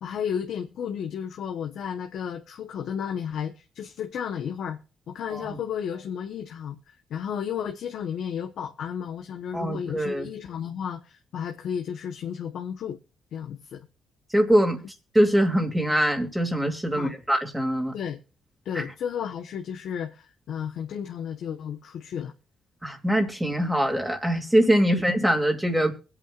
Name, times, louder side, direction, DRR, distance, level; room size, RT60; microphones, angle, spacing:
voice 1, 0.0-4.8 5.1-6.8 7.1-13.0 13.3-13.9 16.9-17.2 17.9-18.2 18.6-22.3 24.9-25.0, left 8 dB, 70° left, 1.1 m, -33 dB
voice 2, 9.5-10.3 14.3-14.8 15.1-17.9 18.7-18.8 22.8-25.9, equal, 5° right, 2.5 m, -23 dB
23.0 x 8.8 x 2.5 m
cardioid pair, 90°, 0 cm